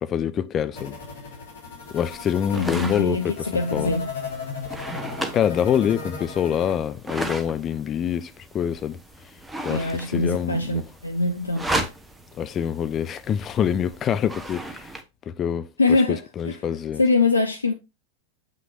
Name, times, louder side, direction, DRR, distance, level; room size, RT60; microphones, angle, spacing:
voice 1, 0.0-1.0 1.9-3.9 5.3-9.0 9.6-10.8 12.3-14.9 15.3-17.0, left 9 dB, 25° left, 0.4 m, -26 dB
sound 1, 0.7-6.7, left 5 dB, 60° left, 2.7 m, -36 dB
sound 2, 1.8-15.0, right 1 dB, 5° right, 1.0 m, -36 dB
voice 2, 2.5-4.1 9.7-11.7 15.8-16.6 17.0-17.7, left 3 dB, 80° left, 0.6 m, -23 dB
7.3 x 6.0 x 2.5 m
figure-of-eight pair, 90°, 0 cm